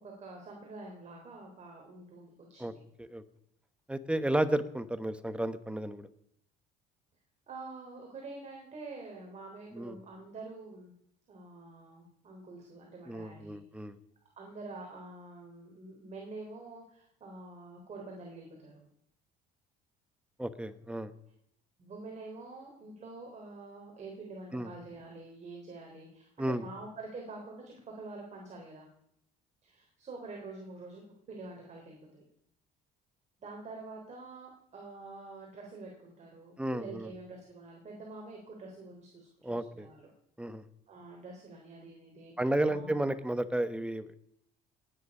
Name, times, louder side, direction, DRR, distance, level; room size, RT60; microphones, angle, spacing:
voice 1, 0.0-2.8 7.5-10.9 11.3-13.8 14.4-18.9 21.8-28.9 29.6-32.2 33.4-40.1 40.9-43.1, right 3 dB, 40° right, 1 dB, 3.8 m, -47 dB
voice 2, 3.9-6.1 9.7-10.0 13.1-13.9 20.4-21.1 24.5-24.7 26.4-26.6 36.6-37.1 39.4-39.9 40.4-40.6 42.4-44.2, right 1 dB, 5° right, 12 dB, 1.1 m, -32 dB
18.5 x 9.9 x 5.5 m, 0.74 s
cardioid pair, 100°, 18 cm